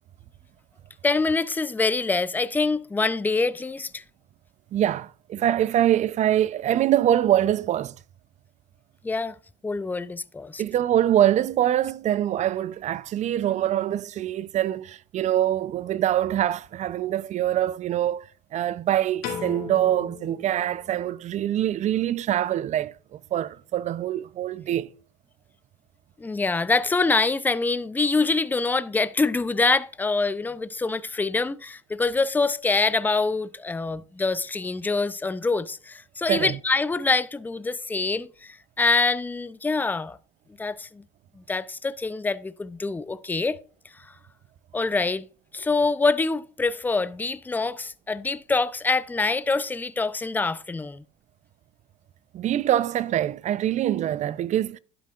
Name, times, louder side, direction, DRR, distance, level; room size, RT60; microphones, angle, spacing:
voice 1, 1.0-4.0 9.0-9.3 9.6-10.6 26.2-40.2 40.6-41.0 41.4-43.6 44.7-45.3 45.5-51.0, left 3 dB, 10° left, 0.5 m, -25 dB
voice 2, 4.7-7.9 10.6-18.2 18.5-24.9 36.3-36.6 52.3-54.8, right 11 dB, 40° right, 0.6 m, -24 dB
Piano, 19.2-21.5, left 7 dB, 65° left, 2.8 m, -37 dB
12.0 x 9.1 x 2.5 m
supercardioid pair, 85°, 18 cm